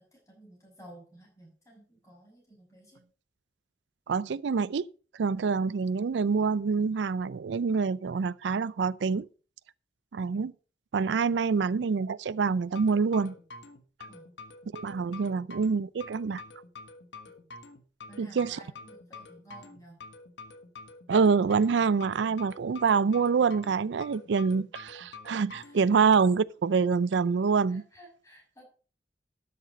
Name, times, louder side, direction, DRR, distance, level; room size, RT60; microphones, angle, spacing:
voice 1, 0.0-3.0 11.4-11.7 14.1-14.3 15.3-15.5 17.3-17.4 18.1-20.0 25.5-25.8 27.7-28.7, right 1 dB, 15° left, 6.3 m, -53 dB
voice 2, 4.1-4.9 5.1-9.3 10.1-10.5 10.9-13.3 14.7-16.4 18.2-18.6 21.1-27.8, right 5 dB, 90° right, 0.4 m, -26 dB
sound 1, 12.8-26.3, left 3 dB, 90° left, 1.4 m, -47 dB
12.5 x 6.7 x 5.3 m
head